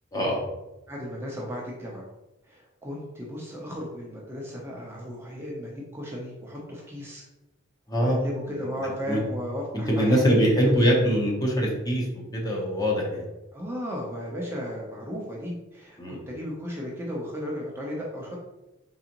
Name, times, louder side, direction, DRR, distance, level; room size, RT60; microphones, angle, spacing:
voice 1, 0.1-0.4 7.9-8.2 8.5-9.2 9.7-12.0 12.3-13.2 16.0-16.2, equal, 20° left, -2 dB, 0.9 m, -23 dB
voice 2, 0.9-2.0 2.5-7.2 8.0-10.9 13.5-18.4, equal, 10° right, -3 dB, 0.7 m, -35 dB
4.7 x 3.8 x 2.9 m, 1.0 s
head